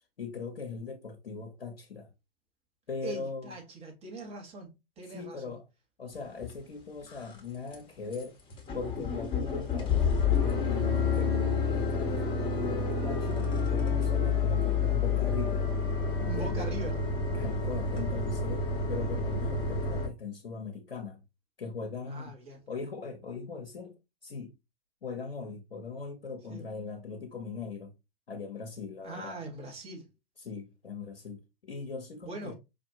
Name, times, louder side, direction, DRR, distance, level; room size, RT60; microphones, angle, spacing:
voice 1, 0.2-2.1 2.9-3.5 5.1-5.6 6.0-8.4 8.7-11.4 11.7-15.7 16.2-16.7 17.3-21.2 21.6-22.4 22.7-23.9 24.2-24.5 25.0-27.9 28.3-29.4 30.4-32.5, left 5 dB, 85° left, 0.8 m, -40 dB
voice 2, 3.0-5.6 16.2-17.0 22.1-22.7 26.5-26.6 29.0-30.1 32.2-32.5, right 2 dB, 20° right, 1.4 m, -42 dB
sound 1, 6.4-6.5 7.0-7.4 7.7-7.8 8.1-8.2 8.5-20.1, left 4 dB, 15° left, 1.1 m, -29 dB
4.9 x 2.5 x 2.7 m
hypercardioid pair, 115°, 30 cm